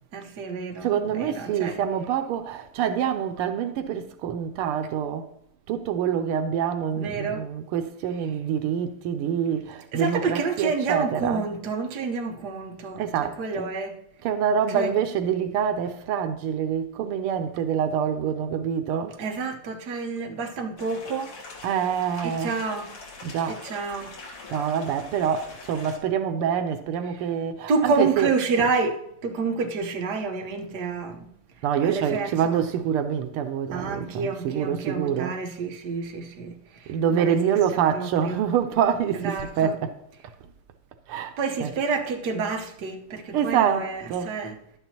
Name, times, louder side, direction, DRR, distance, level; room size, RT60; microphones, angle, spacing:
voice 1, 0.1-1.8 7.0-7.4 9.4-9.5 9.9-14.0 14.7-14.9 19.2-21.3 22.2-22.9 23.5-24.1 27.1-27.2 27.7-31.3 31.8-32.7 33.7-38.4 39.1-39.7 41.4-44.6, right 4 dB, 55° right, 1.5 m, -29 dB
voice 2, 0.8-5.3 5.7-11.5 13.0-13.7 14.2-19.2 21.6-22.6 23.2-23.6 24.5-28.7 31.6-35.4 36.9-40.0 41.1-41.7 43.3-44.4, right 8 dB, 85° right, 1.6 m, -26 dB
sound 1, 20.8-26.0, left 3 dB, 90° left, 2.8 m, -43 dB
11.5 x 9.1 x 2.9 m
omnidirectional pair, 2.4 m